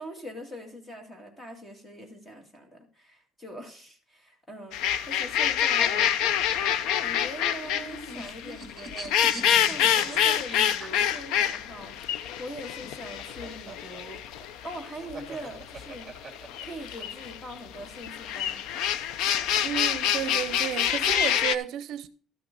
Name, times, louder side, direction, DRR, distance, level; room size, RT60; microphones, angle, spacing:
voice 1, 0.0-6.1 7.0-9.1 9.6-12.1 12.4-14.2 14.6-16.1 16.6-18.6, right 1 dB, 15° left, 2.1 m, -42 dB
sound 1, 4.7-21.5, left 10 dB, 90° left, 0.6 m, -27 dB
sound 2, 7.5-11.6 12.8-17.0, right 2 dB, 10° right, 2.6 m, -42 dB
voice 2, 19.6-22.1, right 10 dB, 65° right, 0.6 m, -32 dB
12.5 x 6.0 x 5.3 m
cardioid pair, 165°, 0 cm